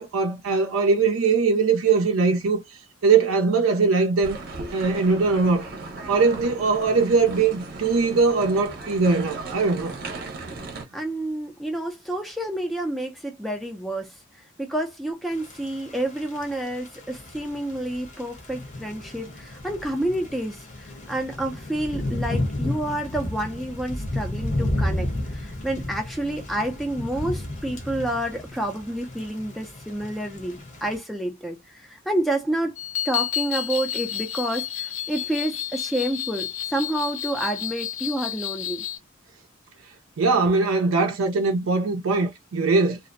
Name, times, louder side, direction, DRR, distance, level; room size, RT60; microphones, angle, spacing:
voice 1, 0.0-4.4 4.7-5.6 6.1-10.0 40.2-43.0, right 4 dB, 90° right, 0.4 m, -21 dB
sound 1, 4.2-10.9, right 3 dB, 45° right, 0.7 m, -37 dB
voice 2, 10.9-32.8 33.0-38.8, right 1 dB, ahead, 0.4 m, -29 dB
Thunder / Rain, 15.3-31.0, left 1 dB, 35° left, 0.7 m, -33 dB
sound 2, 32.8-39.0, left 11 dB, 90° left, 0.6 m, -31 dB
2.5 x 2.0 x 2.5 m
head